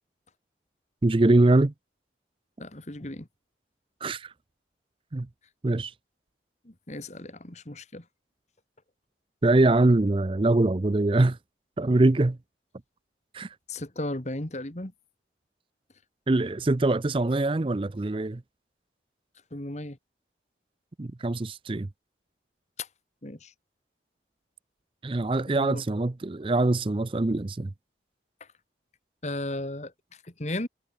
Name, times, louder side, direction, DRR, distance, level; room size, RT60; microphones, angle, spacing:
voice 1, 1.0-1.7 4.0-4.3 5.1-5.3 5.6-5.9 9.4-11.4 11.8-12.4 13.3-13.5 16.3-18.4 21.0-21.9 25.0-27.7, right 2 dB, 30° right, 0.5 m, -23 dB
voice 2, 2.6-3.3 6.7-8.0 13.7-14.9 19.5-20.0 22.8-22.9 23.2-23.5 25.5-25.8 29.2-29.9 30.4-30.7, left 1 dB, 40° left, 2.0 m, -35 dB
head